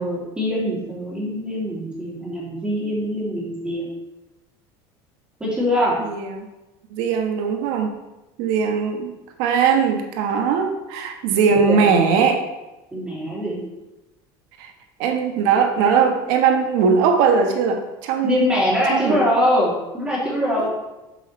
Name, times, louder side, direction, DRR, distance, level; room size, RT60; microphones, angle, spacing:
voice 1, 0.0-3.9 5.4-6.0 11.2-11.9 12.9-13.6 18.2-20.7, left 1 dB, 10° right, -7 dB, 2.9 m, -23 dB
voice 2, 6.0-6.5 6.9-8.0 8.4-12.4 15.0-18.5 18.9-19.2 20.6-20.7, right 6 dB, 70° right, 4 dB, 1.3 m, -20 dB
7.6 x 7.3 x 3.2 m, 1.0 s
cardioid pair, 165°, 12 cm